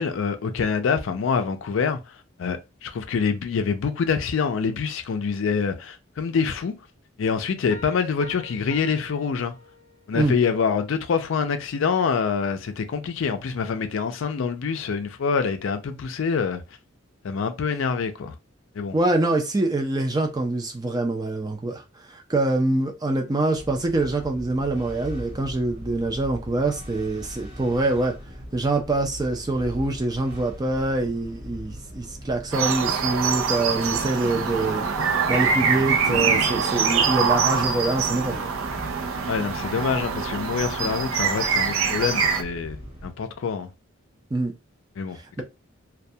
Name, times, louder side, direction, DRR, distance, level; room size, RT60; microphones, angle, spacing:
voice 1, 0.0-2.0 2.4-6.7 7.2-9.5 10.1-16.6 17.2-18.3 18.8-18.9 39.3-43.7 45.0-45.4, left 5 dB, 70° left, 0.4 m, -26 dB
sound 1, 7.7-10.2, left 2 dB, 65° right, 1.0 m, -45 dB
voice 2, 18.9-21.8 22.1-28.2 28.5-34.9 35.3-38.4 44.3-44.5, right 2 dB, 20° right, 0.4 m, -25 dB
sound 2, 23.5-43.1, equal, 45° right, 1.0 m, -41 dB
sound 3, 32.5-42.4, right 5 dB, 85° right, 0.4 m, -24 dB
2.2 x 2.1 x 2.7 m
head